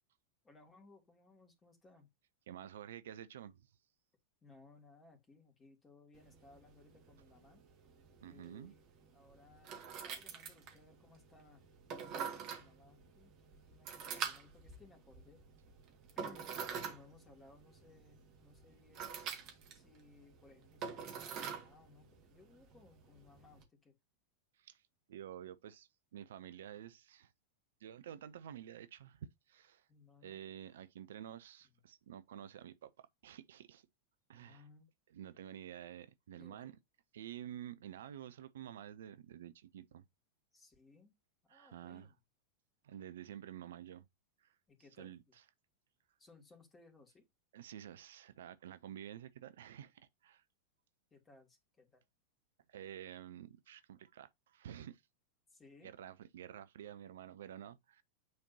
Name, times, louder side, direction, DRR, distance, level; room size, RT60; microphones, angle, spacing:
voice 1, 0.4-2.1 4.4-7.6 8.2-8.9 9.1-11.6 11.9-15.4 16.1-16.5 16.8-19.2 19.7-23.9 29.9-30.4 34.3-34.9 36.4-36.8 40.5-41.1 41.4-42.2 44.7-45.3 46.2-47.2 51.1-52.0 55.5-55.9, left 3 dB, 15° left, 2.7 m, -62 dB
voice 2, 2.5-3.7 8.2-8.7 24.6-24.8 25.1-27.3 27.8-29.9 30.2-33.9 34.3-34.6 35.1-36.7 37.1-40.0 41.5-42.1 42.8-44.1 44.4-44.6 45.0-45.4 47.5-50.4 52.7-55.0 55.8-58.0, right 10 dB, 60° right, 0.5 m, -50 dB
sound 1, 6.1-23.6, right 6 dB, 40° right, 1.8 m, -47 dB
9.4 x 4.3 x 2.8 m
figure-of-eight pair, 90°, 0 cm